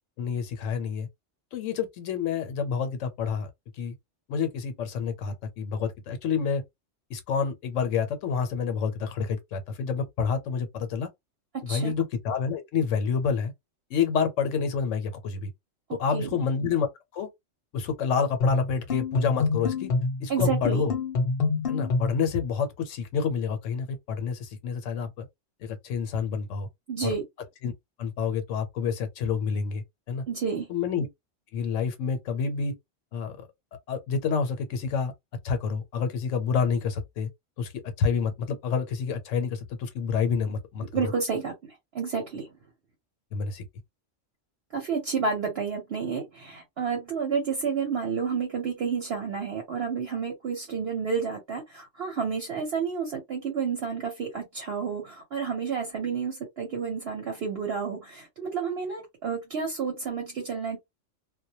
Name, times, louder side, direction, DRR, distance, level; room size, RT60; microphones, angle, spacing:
voice 1, 0.2-1.1 1.5-3.5 3.8-3.9 4.3-6.6 7.1-11.1 11.6-13.5 13.9-15.5 15.9-17.3 17.7-19.9 20.2-20.9 21.7-25.3 25.6-26.7 27.0-27.1 27.6-27.7 28.0-30.2 30.7-31.1 31.5-32.7 33.1-33.5 33.9-35.1 35.4-37.3 37.6-37.7 38.0-41.1 43.3-43.6, left 6 dB, 80° left, 1.0 m, -28 dB
sound 1, 18.4-22.3, left 3 dB, 55° left, 0.8 m, -26 dB
voice 2, 20.3-20.8 26.9-27.2 30.3-30.7 40.9-41.5 41.9-42.5 44.7-60.8, right 6 dB, 60° right, 0.9 m, -30 dB
2.2 x 2.1 x 2.7 m
omnidirectional pair, 1.3 m